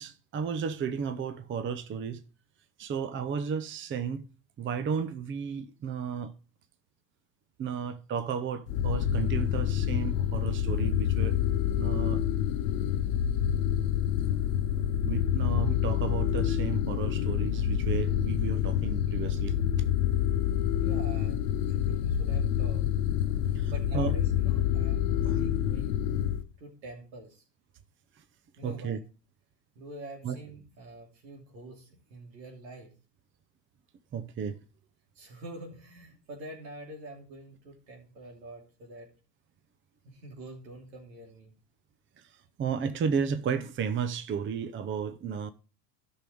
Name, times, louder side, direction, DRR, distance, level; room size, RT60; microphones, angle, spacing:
voice 1, 0.0-2.2 2.8-4.2 4.6-6.3 7.6-11.4 11.8-12.2 15.0-19.5 23.5-24.1 25.2-25.4 28.6-29.0 30.2-30.4 34.1-34.6 42.6-45.5, right 6 dB, 25° right, 0.7 m, -33 dB
sound 1, 8.7-26.4, left 10 dB, 65° left, 1.0 m, -27 dB
voice 2, 20.8-22.8 23.7-26.1 26.6-27.4 28.6-29.0 29.7-32.9 35.1-39.1 40.0-41.5, right 1 dB, 85° right, 3.0 m, -46 dB
13.0 x 6.3 x 3.6 m
hypercardioid pair, 95°, 50 cm